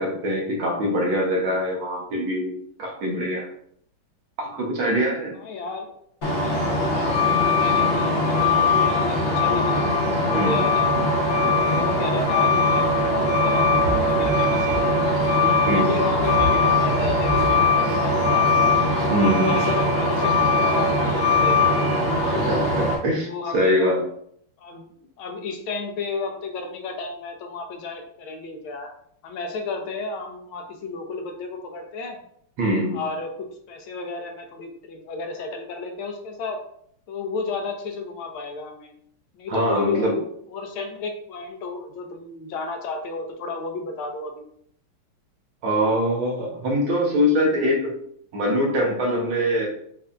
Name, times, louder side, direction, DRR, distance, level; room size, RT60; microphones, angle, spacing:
voice 1, 0.0-3.5 4.4-5.4 10.3-10.6 15.7-16.0 19.1-19.6 22.2-24.1 32.6-33.0 39.5-40.1 45.6-48.0 48.3-49.7, equal, 70° right, -1 dB, 1.6 m, -23 dB
voice 2, 5.3-5.9 6.4-9.9 10.2-10.9 11.6-15.2 15.7-18.7 19.2-21.9 23.2-24.0 24.6-24.9 25.2-28.9 29.2-32.2 32.9-36.6 37.1-38.9 39.3-44.4, left 3 dB, 80° left, 3 dB, 1.4 m, -32 dB
Truck, 6.2-22.9, left 2 dB, 60° left, 0.6 m, -20 dB
5.4 x 2.5 x 2.2 m, 0.67 s
omnidirectional pair, 2.4 m